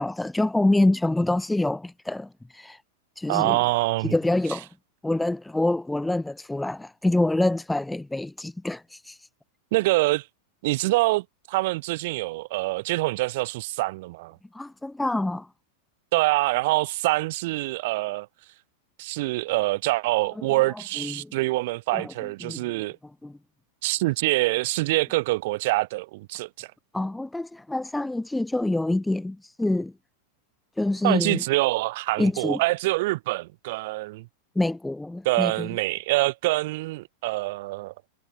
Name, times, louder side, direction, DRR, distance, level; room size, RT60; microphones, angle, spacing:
voice 1, 0.0-2.8 3.2-3.6 4.0-4.7 5.0-9.2 14.5-15.5 20.4-21.3 21.9-22.1 22.4-22.6 23.2-23.4 26.9-29.9 30.8-31.4 32.2-32.6 34.6-35.7, left 2 dB, 5° left, 0.9 m, -26 dB
voice 2, 3.3-4.1 9.7-10.3 10.6-14.4 16.1-18.3 19.0-23.0 23.8-26.7 31.0-34.3 35.2-37.9, right 20 dB, 50° right, 5.7 m, -25 dB
figure-of-eight pair, 90°, 0 cm